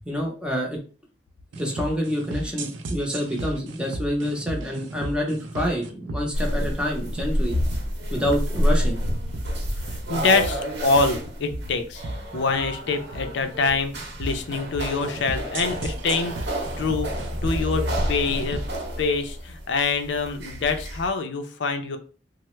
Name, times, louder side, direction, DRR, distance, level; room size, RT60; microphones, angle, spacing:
voice 1, 0.0-0.8 1.5-7.5 8.1-9.0, equal, 5° right, 0 dB, 0.6 m, -27 dB
sound 1, 1.5-18.8, right 2 dB, 85° right, 0.5 m, -35 dB
sound 2, 6.3-21.1, equal, 65° right, 0.9 m, -29 dB
voice 2, 9.9-12.0 12.3-13.9 14.2-16.4 16.8-18.7 19.0-22.0, left 4 dB, 70° left, 7 dB, 0.5 m, -25 dB
3.2 x 2.0 x 3.0 m, 0.39 s
head